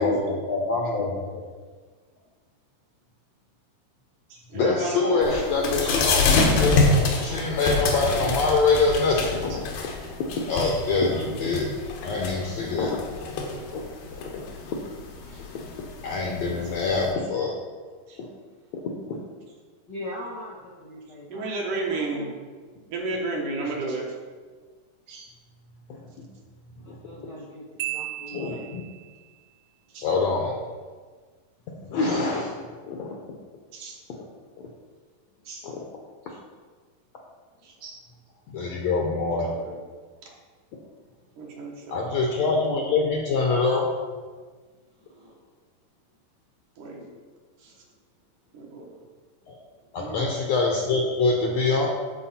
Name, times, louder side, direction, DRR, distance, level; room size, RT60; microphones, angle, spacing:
voice 1, 0.0-1.4 4.5-9.6 10.2-11.7 12.0-13.0 13.7-13.8 14.3-14.4 16.0-17.5 18.2-18.3 19.1-19.2 25.9-26.0 26.9-27.0 28.3-28.8 30.0-30.5 31.9-32.5 32.9-33.2 35.6-35.8 38.5-39.5 41.9-43.9 49.9-51.9, left 3 dB, 70° left, 0 dB, 1.6 m, -25 dB
voice 2, 4.3-5.2 9.5-9.6 15.3-15.4 16.6-16.7 18.1-18.2 21.3-22.3 22.9-24.2 25.1-25.3 29.9-30.1 32.0-32.2 33.7-34.0 35.5-35.7 36.3-36.4 37.6-38.0 39.4-39.8 40.2-40.3 41.4-42.1 46.8-47.1 47.6-47.7 48.5-48.9 50.0-50.4, right 2 dB, 70° right, -1 dB, 2.8 m, -33 dB
sound 1, 5.2-17.1, left 3 dB, 90° left, 2.9 m, -27 dB
voice 3, 19.9-21.5 21.7-22.3 26.8-28.8 35.3-35.4 37.6-37.7 40.8-40.9 45.0-45.4 49.8-49.9, left 1 dB, 55° left, -4 dB, 1.2 m, -41 dB
Marimba xylophone, 27.8-29.2, right 16 dB, 90° right, 1.6 m, -35 dB
13.5 x 4.7 x 4.2 m, 1.5 s
omnidirectional pair, 3.9 m